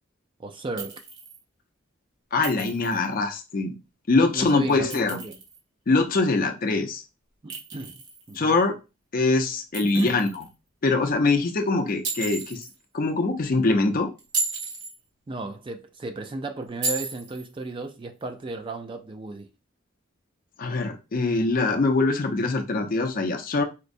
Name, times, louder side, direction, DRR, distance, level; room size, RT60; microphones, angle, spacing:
voice 1, 0.4-1.0 4.3-5.4 7.4-8.0 8.3-8.6 9.8-10.2 15.3-19.5, right 2 dB, 25° right, 0.3 m, -34 dB
Chink clink, 0.8-1.4 2.4-3.1 4.7-5.6 7.5-8.4 9.7-10.5 12.0-12.7 14.2-15.0 16.8-17.5, right 3 dB, 60° right, 0.9 m, -33 dB
voice 2, 2.3-3.7 4.1-5.2 5.9-7.0 8.4-8.8 9.1-10.4 10.8-12.6 12.9-14.1 20.6-23.6, left 3 dB, 45° left, 0.5 m, -23 dB
4.3 x 2.0 x 2.5 m
head